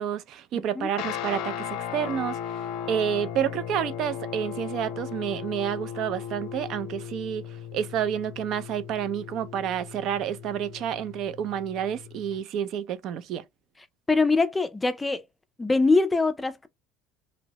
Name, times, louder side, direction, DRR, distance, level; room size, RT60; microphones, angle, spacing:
voice 1, 0.0-7.4 7.7-13.4, right 9 dB, 55° right, 0.3 m, -29 dB
voice 2, 0.5-0.9 14.1-15.2 15.6-16.7, left 3 dB, 10° left, 0.4 m, -23 dB
Guitar, 0.9-12.4, left 9 dB, 75° left, 0.6 m, -37 dB
2.7 x 2.0 x 2.8 m
cardioid pair, 125°, 0 cm